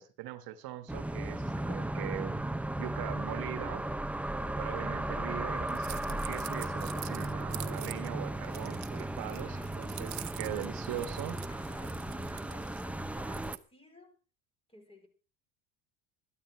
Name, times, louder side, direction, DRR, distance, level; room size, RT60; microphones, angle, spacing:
voice 1, 0.0-3.9 4.6-11.4, right 12 dB, 70° right, 1.4 m, -41 dB
sound 1, 0.9-13.6, right 1 dB, 5° right, 0.7 m, -36 dB
voice 2, 4.4-5.1 9.3-10.4 11.5-14.2 14.7-15.1, left 1 dB, 15° left, 4.5 m, -56 dB
sound 2, 5.4-12.8, right 5 dB, 30° right, 2.2 m, -55 dB
sound 3, 5.7-8.1 8.4-12.9 13.2-13.6, right 12 dB, 50° right, 1.1 m, -46 dB
13.5 x 12.0 x 4.4 m
supercardioid pair, 100°, 38 cm